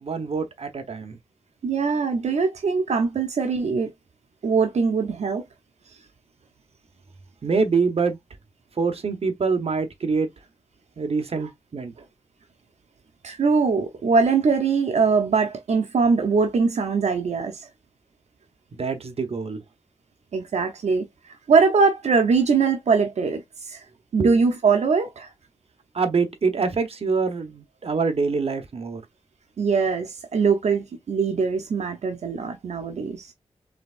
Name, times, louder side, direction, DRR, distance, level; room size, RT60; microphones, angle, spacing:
voice 1, 0.0-1.2 7.4-8.2 8.8-10.3 11.0-11.9 18.7-19.6 24.2-24.3 25.9-29.0, right 4 dB, 65° right, 1.1 m, -25 dB
voice 2, 1.6-3.9 4.4-5.4 11.4-11.5 13.2-17.7 20.3-21.1 21.5-23.8 24.1-25.3 29.6-33.3, right 5 dB, 90° right, 0.7 m, -22 dB
5.0 x 3.5 x 2.5 m
wide cardioid pair, 80°, 11 cm